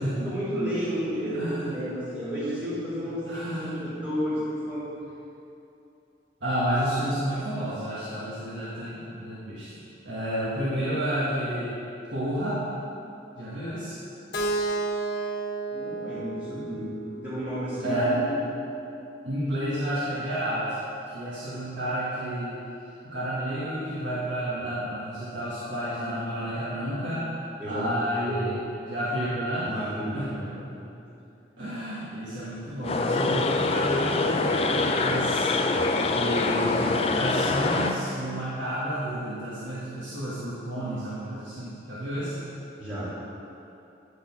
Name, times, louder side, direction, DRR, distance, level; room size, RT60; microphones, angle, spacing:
voice 1, 0.2-4.9 15.7-16.9 17.2-18.3 24.5-24.7 27.6-28.0 29.6-31.0 42.8-43.1, equal, 25° right, -10 dB, 1.9 m, -32 dB
voice 2, 1.2-1.7 2.4-2.5 3.3-3.9 6.4-11.7 12.1-12.6 13.4-13.9 16.5-16.9 17.2-17.3 17.8-18.5 19.2-20.8 21.1-22.6 23.0-27.2 27.7-29.7 30.1-30.3 31.6-35.5 36.0-42.3, equal, 90° right, -10 dB, 1.6 m, -30 dB
Keyboard (musical), 14.3-18.2, right 3 dB, 70° left, 1.2 m, -32 dB
sound 1, 32.8-38.0, left 3 dB, 30° left, 0.4 m, -25 dB
10.0 x 4.1 x 7.1 m, 2.8 s
head